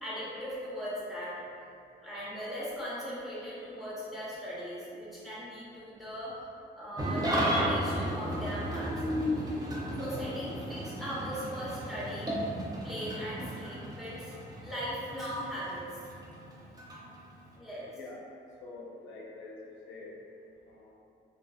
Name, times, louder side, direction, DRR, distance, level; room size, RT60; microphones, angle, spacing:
voice 1, 0.0-1.4 2.0-6.3 6.8-9.0 10.0-12.3 12.8-14.4 14.6-16.1 17.5-17.9, equal, ahead, -9 dB, 0.9 m, -39 dB
Engine starting / Idling, 7.0-17.6, equal, 20° right, 0.5 m, -34 dB
voice 2, 17.9-18.3 18.6-20.2 20.6-20.9, left 3 dB, 75° left, -3 dB, 0.5 m, -46 dB
2.3 x 2.2 x 2.6 m, 2.5 s
cardioid pair, 90°, 20 cm